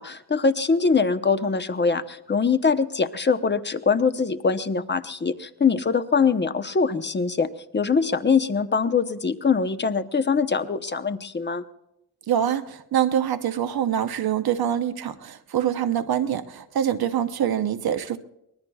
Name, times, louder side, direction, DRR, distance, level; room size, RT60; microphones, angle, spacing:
voice 1, 0.0-11.6, left 5 dB, 30° left, 0.9 m, -23 dB
voice 2, 12.3-18.2, right 9 dB, 75° right, 0.9 m, -25 dB
24.0 x 19.5 x 2.4 m
cardioid pair, 75°, 37 cm